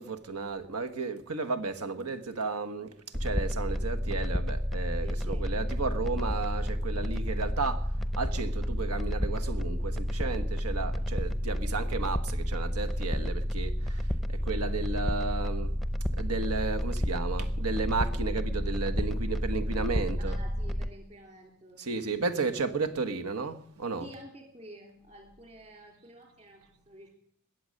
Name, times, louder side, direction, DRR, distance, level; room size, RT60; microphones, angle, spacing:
voice 1, 0.0-15.8 16.2-20.4 21.8-24.2, right 4 dB, 80° right, 1.3 m, -33 dB
sound 1, 3.1-20.9, equal, ahead, 0.7 m, -30 dB
voice 2, 5.0-5.5 20.3-22.4 24.0-27.1, equal, 30° right, 3.4 m, -50 dB
21.0 x 7.9 x 6.4 m
head